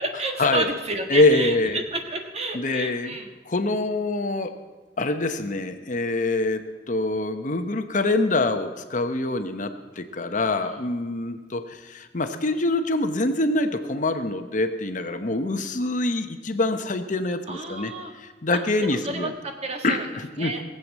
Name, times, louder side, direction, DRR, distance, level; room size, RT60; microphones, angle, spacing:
voice 1, 0.0-3.3 10.6-10.8 17.5-18.1 18.8-20.1 20.4-20.6, right 2 dB, 35° right, 4 dB, 1.5 m, -30 dB
voice 2, 1.1-1.8 2.5-3.1 3.5-4.5 5.0-17.9 18.2-19.3 19.8-20.5, left 2 dB, 45° left, 8 dB, 0.9 m, -25 dB
18.0 x 7.9 x 7.3 m, 1.3 s
head